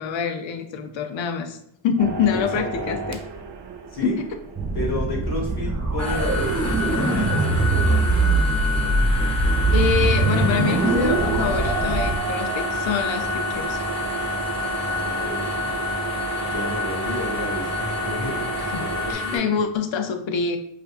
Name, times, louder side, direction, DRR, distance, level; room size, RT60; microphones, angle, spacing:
voice 1, 0.0-1.6 1.8-3.2 4.0-4.3 9.7-13.8 18.7-18.8 19.1-20.6, left 6 dB, 70° left, 7 dB, 0.6 m, -25 dB
sound 1, 2.0-7.9 8.3-8.4 9.9-10.2 10.7-19.1, right 4 dB, 55° right, 0.6 m, -31 dB
voice 2, 2.3-3.0 3.9-4.2 4.7-8.2 14.6-15.7 16.4-19.6, left 1 dB, 55° left, -1 dB, 1.4 m, -32 dB
sound 2, 4.5-12.2, right 3 dB, 35° right, 1.0 m, -22 dB
sound 3, 6.0-19.4, left 4 dB, 35° left, 1.3 m, -29 dB
4.9 x 2.6 x 2.4 m, 0.76 s
cardioid pair, 65°, 48 cm